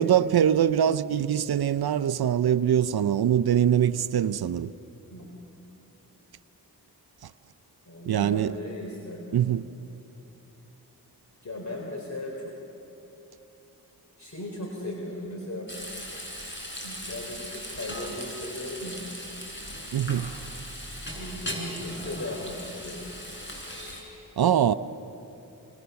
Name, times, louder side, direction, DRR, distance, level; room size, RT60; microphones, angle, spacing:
voice 1, 0.0-4.7 8.1-8.5 9.3-9.7 19.9-20.3 24.4-24.7, right 9 dB, 70° right, 0.7 m, -23 dB
voice 2, 7.9-9.4 11.4-12.5 14.2-15.7 16.8-19.0 21.1-23.1, left 1 dB, 45° left, 4.1 m, -37 dB
Frying (food), 15.7-24.0, equal, 30° left, 6.8 m, -38 dB
28.0 x 26.5 x 7.0 m
cardioid pair, 50°, 39 cm